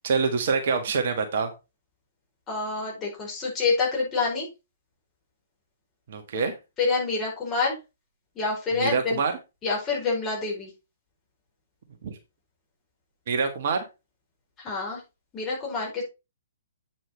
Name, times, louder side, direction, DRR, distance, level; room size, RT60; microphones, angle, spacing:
voice 1, 0.0-1.5 6.1-6.6 8.7-9.3 12.0-12.2 13.3-13.8, right 5 dB, 45° right, 5 dB, 1.5 m, -25 dB
voice 2, 2.5-4.5 6.8-7.8 8.3-9.2 9.6-10.7 14.6-15.0 15.3-16.0, left 4 dB, 20° left, -3 dB, 4.7 m, -27 dB
8.4 x 6.2 x 4.3 m, 0.27 s
figure-of-eight pair, 120°, 0 cm